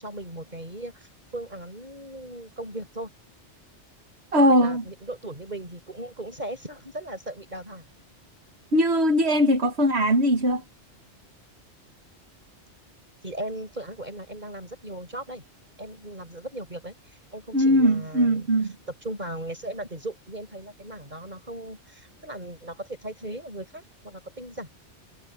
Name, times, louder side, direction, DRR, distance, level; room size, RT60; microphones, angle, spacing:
voice 1, 0.0-3.1 4.5-7.8 13.2-15.4 15.8-18.5 19.0-24.7, right 1 dB, 40° right, 6.8 m, -38 dB
voice 2, 4.3-4.8 8.7-10.6 17.5-18.7, equal, 65° right, 2.2 m, -20 dB
omnidirectional pair, 1.2 m